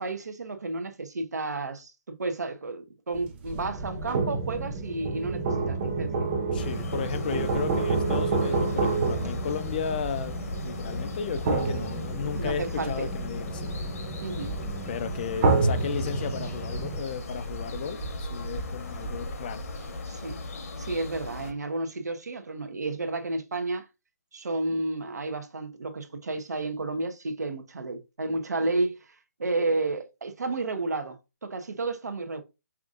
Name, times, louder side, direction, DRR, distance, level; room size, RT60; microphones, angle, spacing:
voice 1, 0.0-6.3 12.3-13.1 14.2-14.5 20.0-20.4 20.8-23.9 24.3-29.0 29.4-32.4, right 2 dB, 85° right, 0.9 m, -31 dB
sound 1, 3.1-19.9, right 3 dB, 35° right, 0.9 m, -29 dB
sound 2, 3.5-17.0, right 2 dB, 15° right, 0.8 m, -39 dB
voice 2, 6.5-10.4 10.6-13.8 14.9-19.6, left 7 dB, 35° left, 0.4 m, -34 dB
sound 3, 6.6-21.5, left 2 dB, 60° left, 1.1 m, -37 dB
5.7 x 2.5 x 2.4 m
hypercardioid pair, 155°, 9 cm